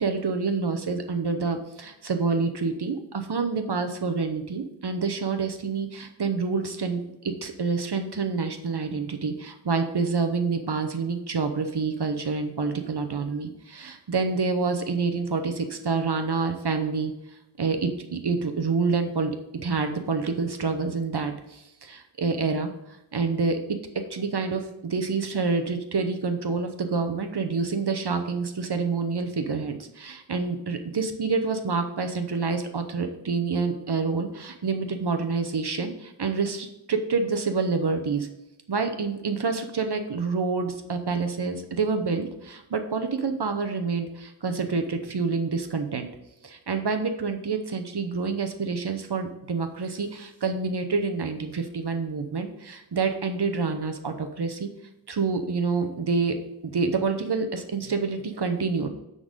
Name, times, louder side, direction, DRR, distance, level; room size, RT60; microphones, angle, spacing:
voice 1, 0.0-17.1 17.6-22.7 23.1-23.6 24.1-38.3 38.7-46.1 46.4-54.7 55.1-56.4 56.6-58.9, right 4 dB, 55° right, 7 dB, 0.9 m, -27 dB
9.8 x 4.0 x 5.1 m, 0.89 s
wide cardioid pair, 90°, 48 cm